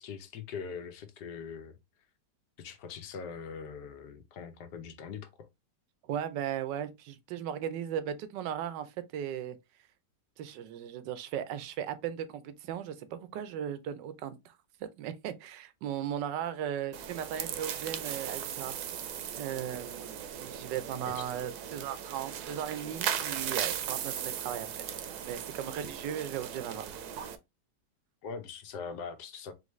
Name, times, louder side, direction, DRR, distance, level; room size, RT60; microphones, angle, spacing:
voice 1, 0.0-1.8 2.6-5.5 21.0-21.3 28.2-29.5, left 6 dB, 75° left, 1.3 m, -42 dB
voice 2, 6.1-9.6 10.4-14.5 15.0-18.8 19.3-26.9, right 9 dB, 90° right, 1.3 m, -37 dB
sound 1, 16.9-27.4, right 9 dB, 70° right, 1.1 m, -37 dB
3.9 x 3.3 x 3.1 m
omnidirectional pair, 1.8 m